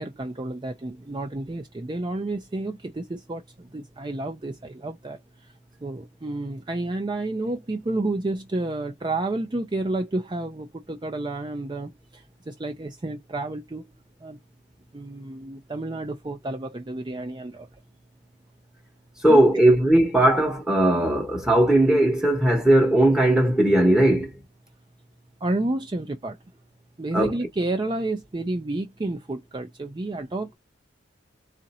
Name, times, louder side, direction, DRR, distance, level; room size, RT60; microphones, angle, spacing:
voice 1, 0.0-5.2 5.8-13.8 14.2-14.4 14.9-17.7 19.3-19.4 25.4-26.4 27.0-30.6, right 2 dB, 25° right, 0.5 m, -30 dB
voice 2, 19.2-24.3 27.1-27.3, right 1 dB, 5° right, 1.0 m, -18 dB
3.8 x 2.5 x 4.1 m
head